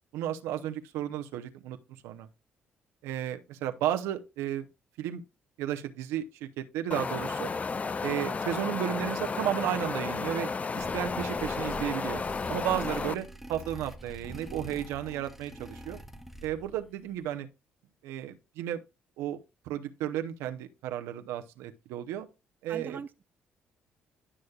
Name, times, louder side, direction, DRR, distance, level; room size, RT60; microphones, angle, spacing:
voice 1, 0.1-1.8 2.0-2.3 3.0-4.7 5.0-5.2 5.6-7.5 8.0-10.5 10.7-12.2 12.5-16.0 16.4-17.5 18.0-18.8 19.2-19.4 19.7-22.3 22.6-23.0, right 11 dB, 80° right, 0.7 m, -33 dB
Wind, 6.9-13.1, left 4 dB, 30° left, 0.4 m, -33 dB
sound 1, 10.8-16.9, right 1 dB, 5° right, 1.0 m, -44 dB
voice 2, 11.5-11.8 16.7-17.0 22.7-23.2, right 6 dB, 45° right, 0.4 m, -44 dB
11.0 x 6.3 x 2.3 m
supercardioid pair, 55°, 5 cm